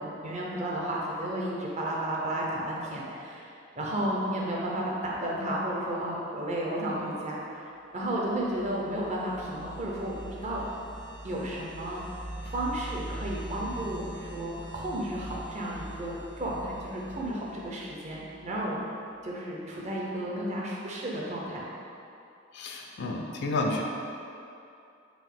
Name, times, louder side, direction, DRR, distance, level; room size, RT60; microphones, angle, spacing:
voice 1, 0.0-10.6 11.2-12.0 12.4-18.8 19.2-21.6, right 1 dB, 35° right, -4 dB, 0.5 m, -33 dB
sound 1, 8.2-18.8, right 1 dB, 65° right, 0.9 m, -43 dB
voice 2, 22.5-23.8, left 2 dB, 55° left, 1 dB, 0.3 m, -30 dB
3.8 x 2.6 x 3.6 m, 2.6 s
head